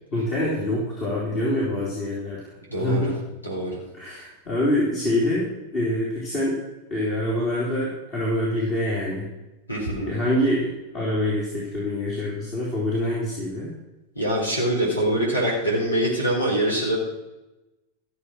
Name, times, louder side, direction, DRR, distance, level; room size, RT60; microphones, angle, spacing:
voice 1, 0.1-2.4 2.8-3.2 3.9-6.5 6.9-9.2 10.0-13.7, left 1 dB, 35° left, -5 dB, 3.8 m, -25 dB
voice 2, 2.7-3.0 3.4-3.8 9.7-10.1 14.2-17.0, right 1 dB, 80° left, -3 dB, 4.3 m, -24 dB
14.5 x 7.4 x 6.3 m, 1.0 s
figure-of-eight pair, 90°, 0 cm